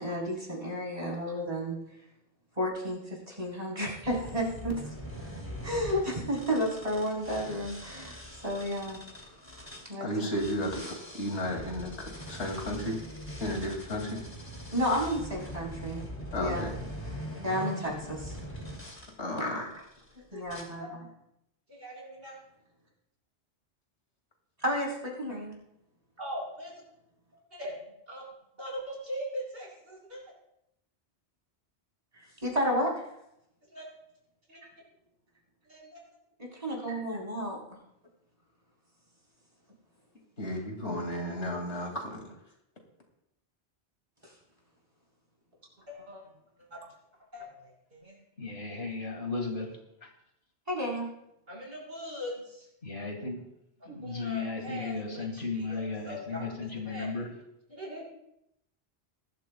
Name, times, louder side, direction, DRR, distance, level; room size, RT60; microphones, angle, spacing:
voice 1, 0.0-1.8 2.6-4.9 5.6-8.2 8.4-9.0 9.9-10.1 14.7-16.0 16.4-16.6 17.4-18.4 19.4-19.7 20.3-21.0 24.6-25.6 32.1-32.9 36.4-37.6 44.2-44.3 50.7-51.1, equal, 35° right, -3 dB, 4.4 m, -32 dB
sound 1, 4.0-9.9 10.3-19.1 19.7-20.1 20.5-20.6, equal, 25° left, 2.6 m, -42 dB
voice 2, 10.0-13.0 13.4-14.2 16.3-16.7 19.2-19.6 40.4-42.3, left 1 dB, 85° left, 1 dB, 2.8 m, -33 dB
voice 3, 20.3-20.9 21.7-22.4 26.2-26.7 27.5-27.8 28.1-28.3 28.6-30.3 33.7-33.9 34.5-34.6 35.6-36.0 45.9-46.2 46.7-46.8 47.3-48.2 51.5-52.7 53.8-57.3 57.7-58.0, equal, 60° right, -3 dB, 5.8 m, -41 dB
voice 4, 48.4-49.7 52.8-53.4 53.9-57.3, left 4 dB, 70° left, 2 dB, 2.3 m, -35 dB
21.0 x 13.5 x 2.3 m, 0.81 s
omnidirectional pair, 1.1 m